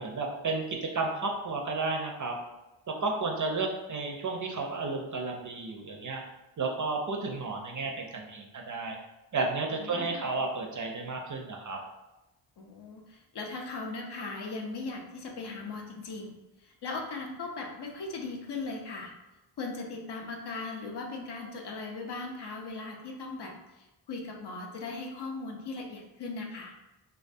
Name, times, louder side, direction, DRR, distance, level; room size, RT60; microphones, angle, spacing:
voice 1, 0.0-2.4 3.0-6.2 6.6-9.0 9.3-11.8, right 3 dB, 40° right, 1 dB, 0.4 m, -32 dB
voice 2, 9.8-10.3 12.6-19.1 19.6-26.7, left 3 dB, 55° left, 1 dB, 0.6 m, -38 dB
2.3 x 2.3 x 2.5 m, 0.99 s
cardioid pair, 45°, 49 cm